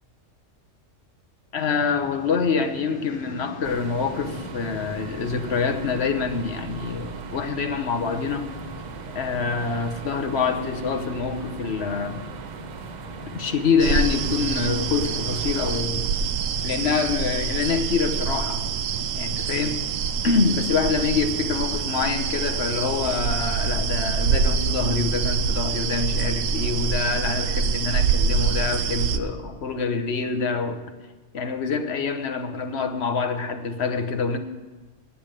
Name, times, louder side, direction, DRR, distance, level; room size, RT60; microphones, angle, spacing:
voice 1, 1.5-8.5 9.1-12.2 13.3-16.1 16.6-18.6 19.1-19.8 20.2-30.8 31.3-34.4, left 5 dB, 55° left, 6 dB, 1.2 m, -26 dB
sound 1, 1.5-17.2, left 1 dB, 25° left, 0.7 m, -42 dB
sound 2, 3.6-15.8, right 8 dB, 60° right, 0.4 m, -39 dB
sound 3, 13.8-29.2, right 6 dB, 90° right, 1.1 m, -25 dB
10.0 x 8.6 x 8.9 m, 1.2 s
omnidirectional pair, 1.3 m